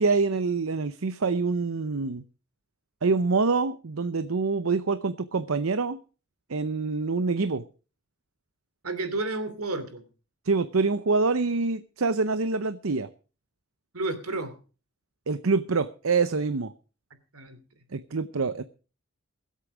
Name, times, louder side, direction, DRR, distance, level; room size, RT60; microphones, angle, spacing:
voice 1, 0.0-2.2 3.0-6.0 6.5-7.6 10.4-13.1 15.3-16.7 17.9-18.6, right 4 dB, 75° right, 12 dB, 0.7 m, -26 dB
voice 2, 8.8-10.0 13.9-14.5 17.3-17.6, right 2 dB, 90° right, 9 dB, 2.9 m, -31 dB
22.0 x 8.3 x 5.0 m, 0.36 s
head